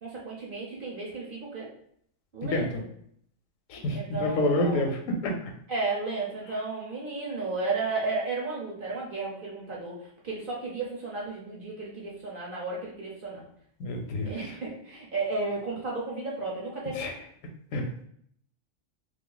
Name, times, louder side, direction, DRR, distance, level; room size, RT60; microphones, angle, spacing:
voice 1, 0.0-1.7 2.3-2.9 3.9-4.9 5.7-13.5 14.2-17.1, right 3 dB, 50° right, -3 dB, 0.7 m, -33 dB
voice 2, 2.4-2.8 3.7-5.3 13.8-14.3 17.0-17.1 17.7-18.1, left 1 dB, 80° left, 3 dB, 1.0 m, -28 dB
2.5 x 2.4 x 3.8 m, 0.67 s
omnidirectional pair, 1.4 m